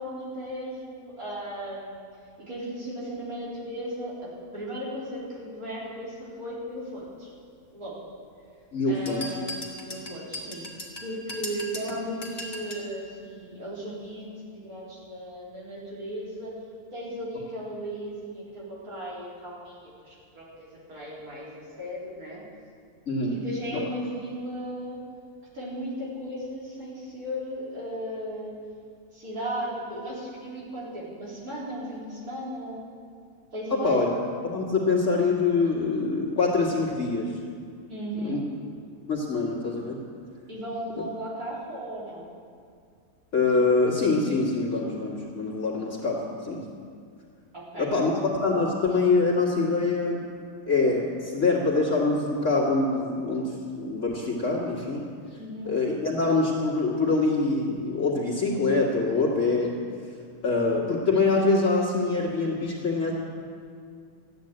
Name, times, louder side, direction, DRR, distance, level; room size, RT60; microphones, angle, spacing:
voice 1, 0.0-2.1 2.5-4.1 4.5-7.3 7.7-8.0 8.9-9.5 9.8-10.6 11.0-16.5 16.9-22.4 23.3-25.0 25.5-28.5 29.1-32.8 33.5-34.1 37.9-38.4 40.5-42.2 47.7-47.9 55.4-55.7, equal, 65° right, -7 dB, 4.5 m, -36 dB
voice 2, 8.7-9.3 23.1-23.4 23.7-23.8 33.8-34.1 34.4-37.3 38.1-38.4 39.1-40.0 43.3-46.6 47.8-50.2 50.7-55.1 55.6-59.7 60.4-63.1, left 3 dB, 50° left, -5 dB, 2.5 m, -24 dB
sound 1, 9.1-12.9, left 1 dB, 15° left, 1.9 m, -38 dB
13.5 x 9.5 x 8.9 m, 2.3 s
omnidirectional pair, 1.7 m